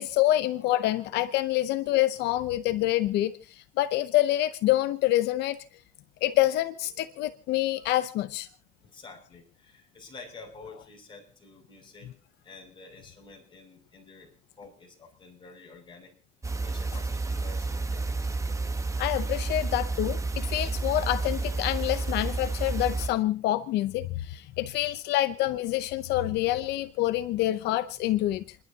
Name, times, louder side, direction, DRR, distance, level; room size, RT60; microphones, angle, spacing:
voice 1, 0.0-5.6 6.2-8.5 19.0-28.6, left 15 dB, 85° left, 0.7 m, -27 dB
voice 2, 8.8-12.1 12.4-14.3 14.6-16.1 16.6-18.3, left 3 dB, 30° left, 6.1 m, -49 dB
sound 1, 16.4-23.1, right 3 dB, 20° right, 1.1 m, -30 dB
30.0 x 11.5 x 2.8 m
cardioid pair, 110°, 17 cm